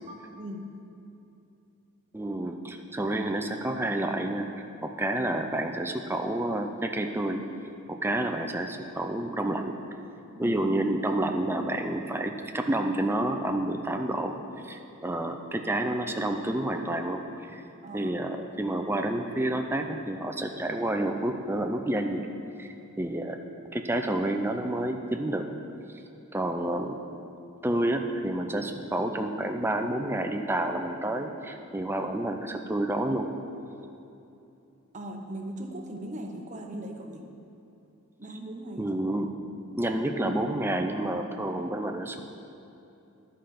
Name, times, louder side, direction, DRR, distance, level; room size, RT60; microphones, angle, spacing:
voice 1, 0.1-0.8 10.4-10.6 17.8-18.1 34.9-37.3 38.2-38.9, right 1 dB, 35° right, 3 dB, 0.8 m, -39 dB
voice 2, 2.1-4.5 4.8-7.4 7.9-9.8 10.4-14.3 14.6-17.2 17.9-22.3 22.6-22.7 23.0-23.4 23.7-25.4 26.3-27.0 27.6-33.3 38.8-39.3 39.8-42.2, right 1 dB, 10° right, 4 dB, 0.4 m, -29 dB
11.5 x 5.1 x 5.8 m, 2.8 s
head